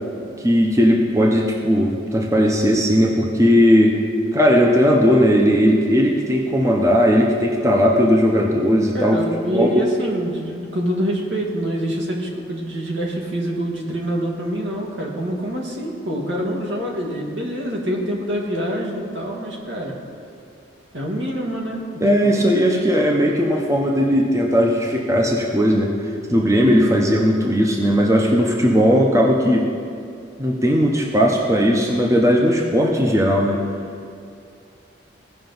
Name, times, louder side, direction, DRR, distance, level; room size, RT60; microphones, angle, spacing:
voice 1, 0.4-3.9 4.3-9.2 9.5-9.9 22.0-25.9 26.3-29.7 30.4-33.6, equal, 15° right, -1 dB, 0.7 m, -17 dB
voice 2, 8.9-19.9 20.9-22.4, equal, 75° right, -1 dB, 1.7 m, -26 dB
16.5 x 5.6 x 4.0 m, 2.4 s
head